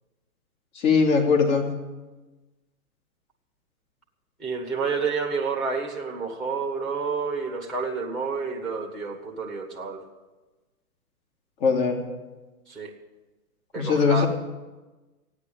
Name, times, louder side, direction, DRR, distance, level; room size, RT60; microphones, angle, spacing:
voice 1, 0.7-1.7 11.6-12.0 13.7-14.3, left 5 dB, 35° left, 1 dB, 3.0 m, -21 dB
voice 2, 4.4-10.0 12.7-12.9 13.7-14.3, right 5 dB, ahead, -1 dB, 1.5 m, -29 dB
14.5 x 9.7 x 8.7 m, 1.2 s
hypercardioid pair, 140°, 46 cm